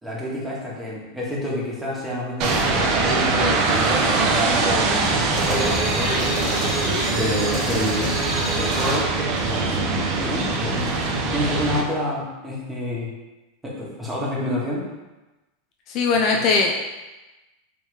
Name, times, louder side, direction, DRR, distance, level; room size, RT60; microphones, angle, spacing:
voice 1, 0.0-9.1 9.4-13.1 13.6-14.9, left 1 dB, 10° right, -5 dB, 1.1 m, -29 dB
sound 1, 2.4-11.8, right 3 dB, 50° right, 0.6 m, -23 dB
voice 2, 5.2-5.5 15.9-16.7, left 4 dB, 50° left, 0 dB, 0.5 m, -21 dB
sound 2, 5.3-9.1, right 1 dB, 30° right, 1.2 m, -27 dB
3.3 x 3.1 x 3.3 m, 1.1 s
supercardioid pair, 120°, 0 cm